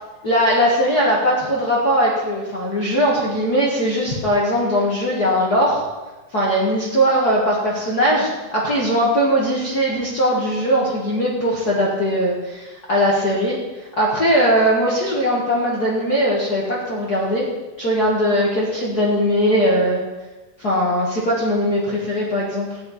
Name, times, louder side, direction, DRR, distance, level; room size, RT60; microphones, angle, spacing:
voice 1, 0.2-5.8 6.3-13.6 14.0-17.5 17.8-20.0 20.6-22.8, equal, 35° left, -5 dB, 1.8 m, -19 dB
14.5 x 10.5 x 4.3 m, 1.2 s
omnidirectional pair, 3.5 m